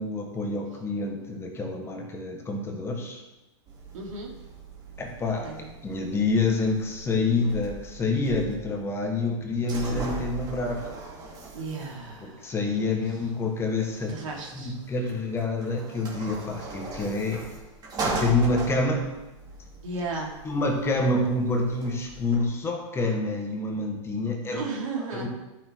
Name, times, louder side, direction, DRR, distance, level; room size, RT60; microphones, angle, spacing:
voice 1, 0.0-3.2 5.0-10.9 12.2-14.1 14.5-17.5 18.1-19.1 20.4-24.6 25.1-25.3, left 3 dB, 15° left, 2 dB, 1.5 m, -27 dB
sound 1, 3.7-22.4, right 3 dB, 25° right, 2.3 m, -39 dB
voice 2, 3.9-4.3 5.4-5.7 11.5-12.5 12.8-13.0 14.1-14.8 19.8-20.3 24.5-25.3, right 3 dB, 85° right, 0 dB, 2.8 m, -34 dB
11.5 x 6.7 x 4.6 m, 1.0 s
supercardioid pair, 145°, 16 cm